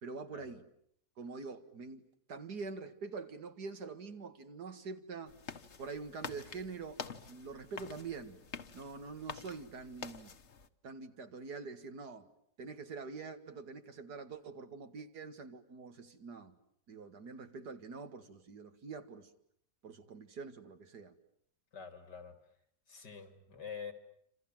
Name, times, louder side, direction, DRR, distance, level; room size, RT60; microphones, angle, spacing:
voice 1, 0.0-0.6 1.2-2.0 2.3-5.3 5.8-8.4 8.7-10.3 10.8-12.3 12.6-16.6 16.9-19.3 19.8-21.1, right 4 dB, 70° right, 8 dB, 2.4 m, -45 dB
sound 1, 5.3-10.7, left 5 dB, 45° left, 1.4 m, -47 dB
voice 2, 21.7-22.4 22.9-23.9, left 6 dB, 90° left, 8 dB, 3.6 m, -46 dB
29.0 x 26.5 x 7.5 m, 0.69 s
omnidirectional pair, 1.8 m